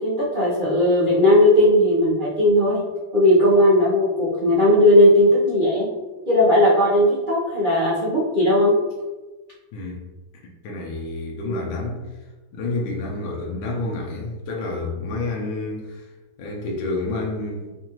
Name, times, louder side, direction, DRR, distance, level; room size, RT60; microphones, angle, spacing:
voice 1, 0.0-2.8 3.1-5.9 6.3-8.7 11.4-11.7, left 1 dB, 80° right, -10 dB, 0.4 m, -17 dB
voice 2, 9.7-10.1 10.6-12.1 12.5-16.1 16.4-17.7, left 2 dB, 80° left, -1 dB, 1.5 m, -29 dB
5.1 x 2.4 x 2.9 m, 1.2 s
omnidirectional pair, 2.3 m